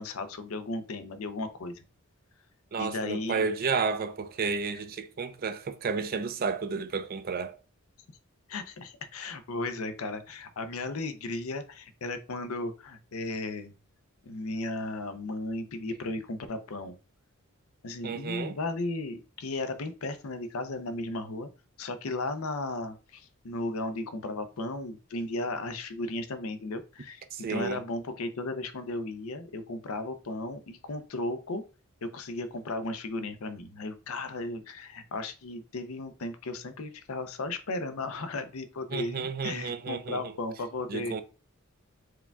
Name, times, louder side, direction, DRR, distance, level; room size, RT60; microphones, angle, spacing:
voice 1, 0.0-1.8 2.8-3.5 8.5-13.7 14.2-17.0 17.8-21.5 21.8-31.6 32.0-41.2, left 2 dB, 75° left, 0.6 m, -35 dB
voice 2, 2.7-7.6 18.0-18.5 27.3-27.8 38.9-40.3 40.9-41.2, right 5 dB, 45° right, 0.4 m, -32 dB
4.7 x 2.3 x 3.4 m
head